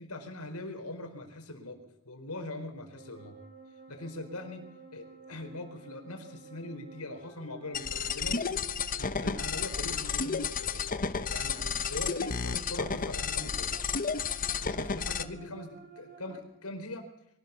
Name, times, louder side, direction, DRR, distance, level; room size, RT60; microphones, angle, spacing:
voice 1, 0.0-1.8 2.0-3.3 3.9-8.5 9.0-13.7 14.6-17.1, left 2 dB, 85° left, 6 dB, 4.5 m, -42 dB
sound 1, 3.0-16.4, right 1 dB, 45° right, 6.9 m, -51 dB
sound 2, 7.7-15.2, left 5 dB, 40° left, 1.1 m, -32 dB
23.5 x 17.0 x 7.0 m, 0.76 s
head